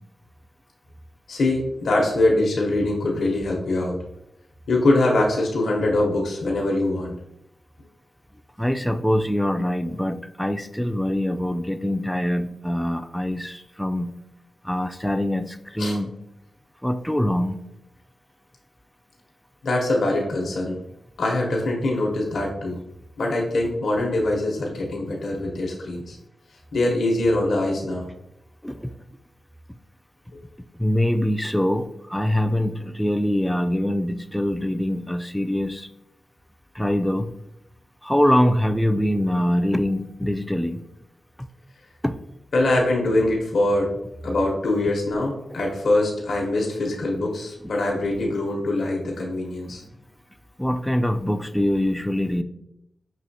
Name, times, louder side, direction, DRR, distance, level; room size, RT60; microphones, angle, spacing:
voice 1, 1.3-4.0 4.7-7.2 15.8-16.0 19.6-20.8 21.2-22.8 23.2-26.2 26.7-28.1 42.5-43.9 44.2-49.8, left 2 dB, 80° left, -1 dB, 0.8 m, -23 dB
voice 2, 8.6-14.2 14.6-16.1 16.8-17.6 28.6-28.9 30.8-35.9 36.8-37.3 38.0-40.8 42.0-42.2 50.6-52.4, left 1 dB, 5° left, 9 dB, 0.3 m, -23 dB
5.4 x 2.8 x 2.7 m, 0.82 s
cardioid pair, 70°, 0 cm